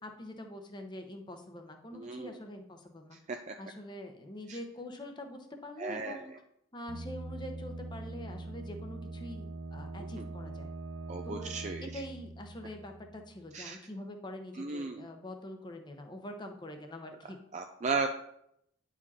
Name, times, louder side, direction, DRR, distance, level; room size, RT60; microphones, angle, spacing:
voice 1, 0.0-3.2 3.6-6.3 6.7-10.7 11.2-11.5 11.8-17.4, left 1 dB, 25° left, 4 dB, 0.9 m, -44 dB
voice 2, 1.9-2.3 3.3-3.5 4.5-4.6 5.8-6.2 10.2-10.3 11.1-12.0 13.5-13.8 14.6-15.1 17.5-18.1, right 4 dB, 35° right, 4 dB, 0.4 m, -35 dB
sound 1, 6.9-13.5, right 2 dB, 70° right, 0.7 m, -43 dB
10.0 x 5.0 x 4.2 m, 0.75 s
head